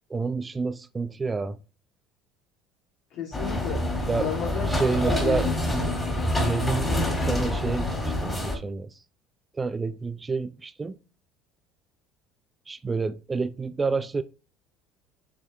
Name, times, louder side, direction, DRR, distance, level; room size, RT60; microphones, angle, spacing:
voice 1, 0.1-1.6 4.1-4.3 4.7-6.0 6.4-6.9 7.3-8.9 9.6-11.0 12.7-14.2, right 4 dB, 25° right, 0.3 m, -29 dB
voice 2, 3.1-3.8 4.1-5.4, left 7 dB, 60° left, 1.9 m, -33 dB
sound 1, 3.3-8.6, left 1 dB, 20° left, 2.1 m, -26 dB
6.9 x 3.4 x 2.2 m
hypercardioid pair, 65°, 0 cm